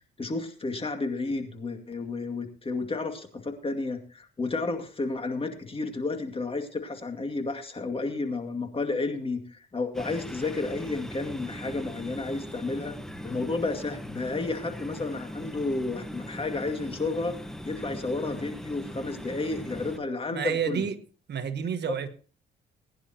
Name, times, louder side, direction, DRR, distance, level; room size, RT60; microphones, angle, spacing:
voice 1, 0.2-13.0 13.2-17.4 17.6-20.8, left 3 dB, 30° left, 2.3 m, -31 dB
sound 1, 9.9-20.0, equal, ahead, 1.3 m, -40 dB
voice 2, 20.3-21.0 21.3-22.1, right 7 dB, 60° right, 1.3 m, -29 dB
20.5 x 10.5 x 2.9 m
cardioid pair, 90°, 20 cm